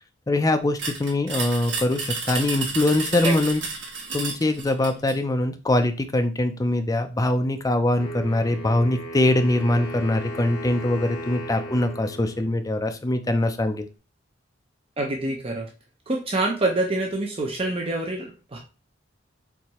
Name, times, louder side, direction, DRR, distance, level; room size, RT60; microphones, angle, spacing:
voice 1, 0.3-3.6 4.1-13.9, left 1 dB, 20° left, 7 dB, 0.4 m, -23 dB
sound 1, 0.8-5.2, right 4 dB, 65° right, 1.1 m, -31 dB
Wind instrument woodwind instrument, 8.0-13.0, equal, 60° left, 2.1 m, -36 dB
voice 2, 15.0-15.7 16.1-18.6, right 2 dB, 30° right, 0 dB, 0.6 m, -26 dB
4.6 x 3.2 x 2.9 m, 0.33 s
head